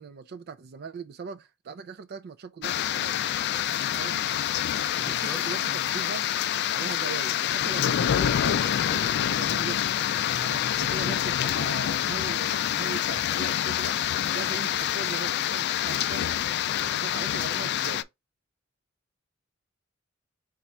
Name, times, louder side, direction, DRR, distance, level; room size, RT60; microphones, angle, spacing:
voice 1, 0.0-3.2 3.9-4.2 5.0-6.3 6.7-9.9 10.4-14.0 14.3-16.5 16.8-18.1, right 5 dB, 50° right, 0.4 m, -40 dB
sound 1, 2.6-18.0, left 10 dB, 55° left, 0.3 m, -27 dB
sound 2, 3.3-12.0, right 5 dB, 70° right, 1.2 m, -53 dB
voice 2, 4.9-6.0, equal, 10° left, 0.8 m, -43 dB
4.1 x 2.4 x 4.2 m
head